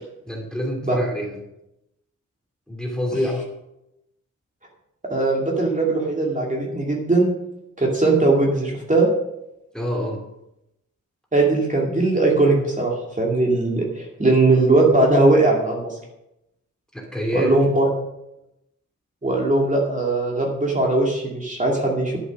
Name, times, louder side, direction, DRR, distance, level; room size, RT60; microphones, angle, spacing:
voice 1, 0.2-1.4 2.7-3.4 9.7-10.2 16.9-17.5, left 1 dB, ahead, 0 dB, 2.9 m, -26 dB
voice 2, 5.1-7.3 7.8-9.1 11.3-16.0 17.3-17.8 19.2-22.2, right 2 dB, 25° right, -2 dB, 2.4 m, -19 dB
11.5 x 7.9 x 6.2 m, 0.87 s
wide cardioid pair, 110°, 32 cm